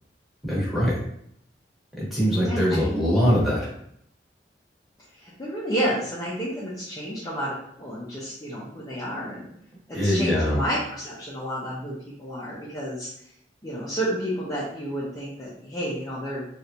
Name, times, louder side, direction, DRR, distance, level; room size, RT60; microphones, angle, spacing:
voice 1, 0.4-1.0 2.0-3.7 9.9-10.6, equal, ahead, -7 dB, 1.1 m, -22 dB
voice 2, 2.4-2.9 5.2-9.5 9.9-13.1 13.6-16.5, equal, 20° left, -8 dB, 0.6 m, -31 dB
3.2 x 2.5 x 2.8 m, 0.71 s
head